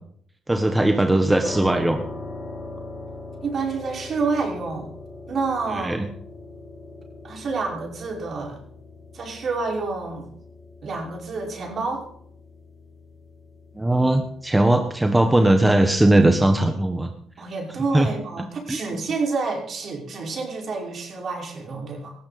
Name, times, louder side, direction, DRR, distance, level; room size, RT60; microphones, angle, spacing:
voice 1, 0.5-2.0 5.7-6.0 13.8-17.1 17.9-18.1 18.7-18.8, right 1 dB, 10° right, 5 dB, 1.4 m, -19 dB
sound 1, 1.4-16.3, left 2 dB, 30° left, 6.2 m, -41 dB
voice 2, 3.4-4.9 5.3-6.0 7.2-8.6 9.1-10.3 10.8-12.0 17.4-22.1, right 4 dB, 50° right, 0 dB, 5.6 m, -28 dB
18.5 x 15.0 x 4.3 m, 0.65 s
cardioid pair, 95°, 0 cm